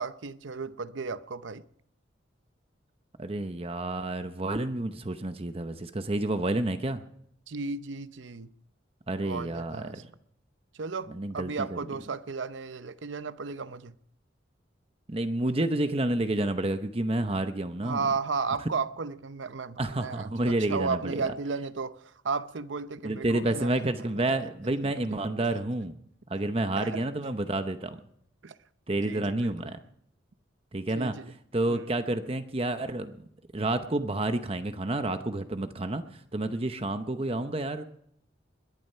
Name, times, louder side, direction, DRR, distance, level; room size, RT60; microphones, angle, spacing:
voice 1, 0.0-1.6 7.5-8.5 9.2-10.0 10.7-13.9 17.8-23.9 24.3-24.4 26.8-27.0 28.4-28.6 29.0-29.5 30.9-31.3 31.7-31.9, right 4 dB, 75° right, 0.7 m, -34 dB
voice 2, 3.2-7.0 9.1-10.1 11.1-11.8 15.1-18.0 19.8-21.3 23.0-25.9 26.3-28.0 28.9-29.8 30.7-31.1 31.5-33.2 33.5-37.8, right 2 dB, 30° right, 0.8 m, -29 dB
21.0 x 11.0 x 5.6 m
head